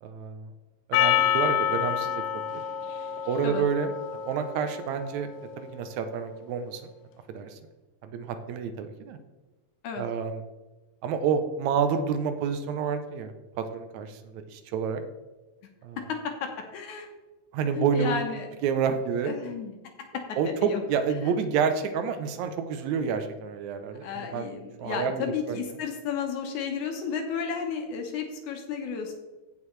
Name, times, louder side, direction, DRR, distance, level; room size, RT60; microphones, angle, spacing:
voice 1, 0.0-0.5 0.9-2.4 3.3-3.9 4.2-5.3 5.6-6.8 7.3-7.6 8.0-9.2 10.0-10.4 11.0-15.0 15.8-16.0 17.5-18.2 18.6-19.3 20.4-24.5 24.8-25.6, right 6 dB, 75° right, 8 dB, 1.9 m, -29 dB
Percussion, 0.9-5.5, left 10 dB, 85° left, 2.3 m, -28 dB
voice 2, 16.0-17.1 17.7-18.5 19.2-20.1 20.6-20.8 24.0-29.1, left 6 dB, 70° left, 3 dB, 2.3 m, -33 dB
16.0 x 5.5 x 3.2 m, 1.2 s
omnidirectional pair, 3.7 m